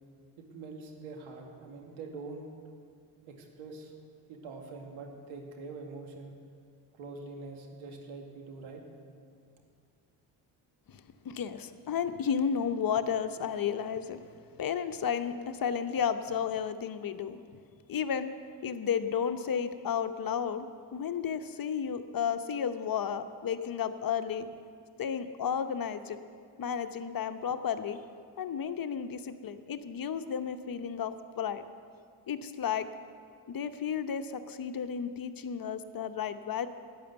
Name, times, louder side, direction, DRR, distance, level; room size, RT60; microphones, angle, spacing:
voice 1, 0.4-2.5 3.3-3.9 4.3-6.4 6.9-8.8, right 3 dB, 75° right, 2 dB, 2.2 m, -44 dB
voice 2, 10.9-14.2 14.6-17.6 17.9-18.3 18.6-20.7 20.9-24.5 25.0-26.2 26.6-28.0 28.4-31.6 32.3-32.9 33.5-36.7, left 7 dB, 45° left, 10 dB, 0.9 m, -33 dB
12.0 x 9.7 x 8.1 m, 2.3 s
hypercardioid pair, 55°, 49 cm